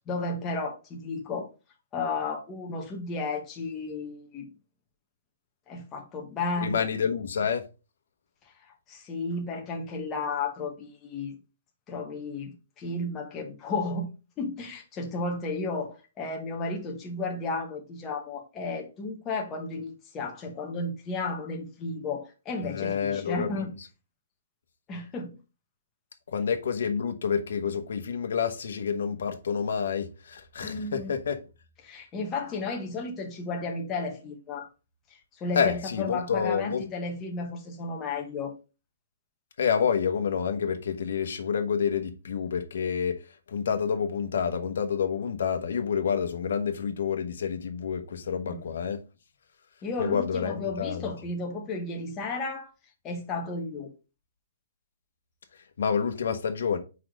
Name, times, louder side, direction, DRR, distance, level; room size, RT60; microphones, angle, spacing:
voice 1, 0.1-1.5 1.9-4.5 5.7-6.8 8.9-11.4 11.9-14.1 14.4-23.7 24.9-25.4 30.6-31.1 31.8-34.7 35.4-38.5 48.5-48.7 49.8-52.7 53.0-53.9, left 3 dB, 15° left, 0.9 m, -33 dB
voice 2, 6.6-7.6 22.6-23.7 26.3-31.4 35.5-36.8 39.6-43.2 43.5-49.0 50.0-51.1 55.8-56.8, left 7 dB, 60° left, 1.1 m, -28 dB
4.7 x 4.2 x 5.0 m
hypercardioid pair, 180°, 0 cm